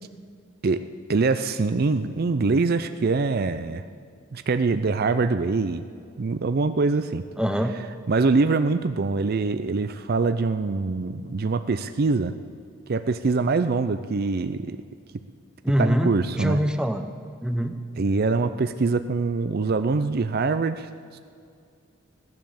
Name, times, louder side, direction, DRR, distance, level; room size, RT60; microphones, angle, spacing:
voice 1, 1.1-3.8 4.3-5.9 6.2-7.2 8.1-12.3 12.9-14.8 15.8-16.6 18.0-20.9 21.1-21.2, right 3 dB, 50° right, 10 dB, 0.5 m, -24 dB
voice 2, 7.4-7.7 15.6-17.1 17.4-17.8, equal, 5° right, 8 dB, 0.7 m, -24 dB
16.5 x 10.5 x 7.1 m, 2.3 s
head